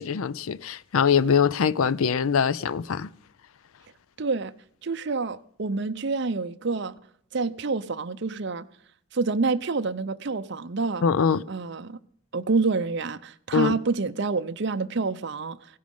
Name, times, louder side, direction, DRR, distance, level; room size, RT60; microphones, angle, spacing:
voice 1, 0.0-3.1 11.0-11.4 13.5-13.8, left 6 dB, 75° left, 0.5 m, -23 dB
voice 2, 4.2-4.5 4.8-7.0 7.3-8.7 9.1-11.0 11.5-12.0 12.3-15.6, right 4 dB, 50° right, 0.6 m, -27 dB
16.0 x 11.5 x 5.4 m
head